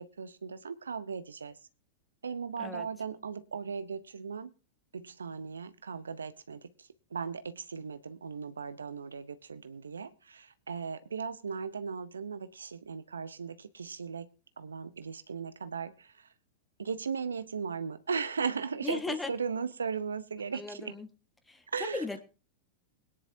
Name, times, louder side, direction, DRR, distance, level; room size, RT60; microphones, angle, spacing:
voice 1, 0.0-1.6 2.2-4.5 4.9-14.3 14.6-16.3 16.8-20.9 21.7-22.0, right 5 dB, 80° right, 13 dB, 0.8 m, -37 dB
voice 2, 18.8-19.3 20.5-21.1 21.5-22.2, left 3 dB, 10° left, 8 dB, 1.6 m, -37 dB
22.0 x 10.0 x 2.8 m, 0.32 s
figure-of-eight pair, 95°, 0 cm